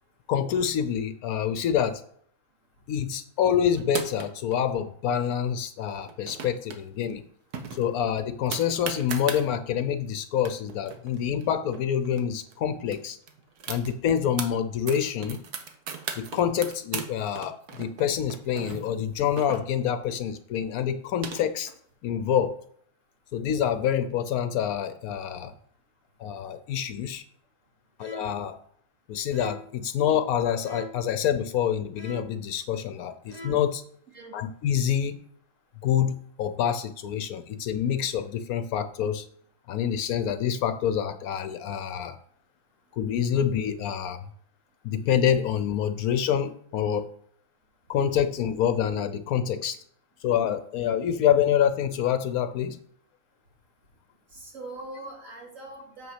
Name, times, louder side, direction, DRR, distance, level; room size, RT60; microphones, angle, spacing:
voice 1, 0.3-2.0 2.9-7.2 7.7-13.2 13.7-15.4 16.2-21.7 22.0-22.6 23.3-25.5 26.2-27.2 28.0-28.6 29.1-33.8 34.3-35.3 35.8-39.3 39.7-42.2 42.9-44.3 44.8-47.1 47.9-49.8 50.2-52.8, left 9 dB, 75° left, 11 dB, 1.0 m, -27 dB
sound 1, 3.8-4.5 6.0-6.8 7.1-7.2 7.5-9.4 10.1-10.2 10.4-12.2 12.5-12.6 12.9-14.5 14.9-17.1 17.4-20.0 20.8-21.7, right 6 dB, 85° right, 1.6 m, -37 dB
sound 2, 28.0-28.5 29.3-29.8 30.6-31.1 32.0-32.5 33.2-33.8, equal, 30° right, 1.0 m, -44 dB
voice 2, 54.3-56.1, right 2 dB, 55° right, -2 dB, 3.1 m, -42 dB
7.4 x 5.7 x 5.7 m, 0.62 s
omnidirectional pair, 1.6 m